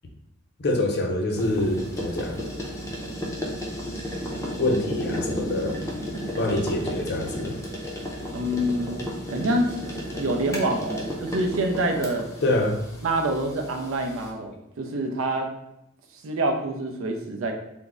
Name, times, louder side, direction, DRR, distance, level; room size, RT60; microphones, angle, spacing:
voice 1, 0.6-2.4 4.6-5.8 6.4-7.5 12.4-12.8, left 1 dB, 55° left, 1 dB, 0.6 m, -25 dB
sound 1, 1.4-14.3, equal, 15° left, 0.5 m, -33 dB
voice 2, 8.3-9.0 9.3-9.8 10.2-12.3 13.0-15.5 16.2-17.5, right 1 dB, 70° right, 4 dB, 0.5 m, -26 dB
3.5 x 2.0 x 3.6 m, 0.82 s
head